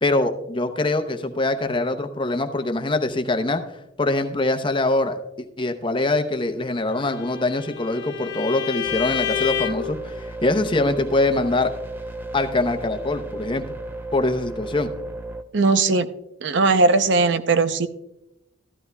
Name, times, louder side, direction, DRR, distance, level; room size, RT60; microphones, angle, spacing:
voice 1, 0.0-3.6 4.0-5.2 5.6-11.7 12.3-13.6 14.1-14.9, left 2 dB, 25° left, 7 dB, 0.7 m, -23 dB
Bowed string instrument, 6.9-10.0, left 9 dB, 65° left, 0.6 m, -29 dB
sound 1, 8.8-15.4, right 1 dB, 10° right, 0.4 m, -34 dB
voice 2, 15.5-16.1 16.4-17.9, right 3 dB, 60° right, 11 dB, 0.6 m, -18 dB
13.5 x 12.0 x 2.2 m, 0.87 s
head